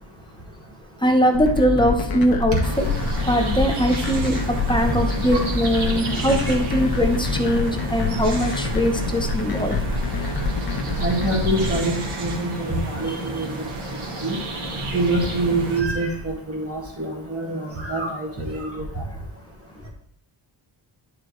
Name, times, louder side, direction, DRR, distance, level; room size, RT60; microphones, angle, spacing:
voice 1, 1.0-2.9 3.3-9.8 13.4-13.5, equal, 10° left, 3 dB, 0.9 m, -21 dB
sound 1, 1.3-11.8, left 4 dB, 45° left, 1.1 m, -26 dB
sound 2, 2.6-15.8, right 2 dB, 80° right, 2.2 m, -32 dB
voice 2, 11.0-13.5 14.2-14.4 14.9-19.0, right 2 dB, 30° right, -2 dB, 1.9 m, -25 dB
11.0 x 4.8 x 3.2 m, 0.71 s
wide cardioid pair, 150°, 50 cm